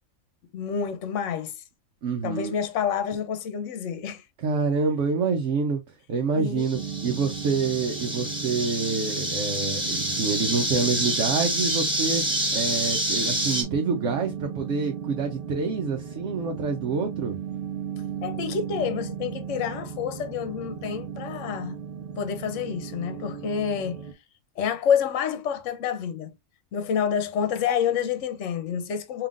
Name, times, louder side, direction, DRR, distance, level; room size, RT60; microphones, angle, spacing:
voice 1, 0.5-1.6 2.2-4.2 6.4-6.7 18.2-21.8 22.2-24.0 24.6-26.3 26.7-29.3, left 7 dB, 65° left, 1.0 m, -28 dB
voice 2, 2.0-2.5 4.4-5.8 6.1-12.2 12.5-17.4, right 5 dB, 65° right, 1.0 m, -27 dB
sound 1, 6.6-13.6, right 1 dB, 5° right, 1.7 m, -28 dB
sound 2, 6.7-24.1, right 7 dB, 50° right, 0.7 m, -36 dB
5.4 x 2.9 x 2.5 m
omnidirectional pair, 1.4 m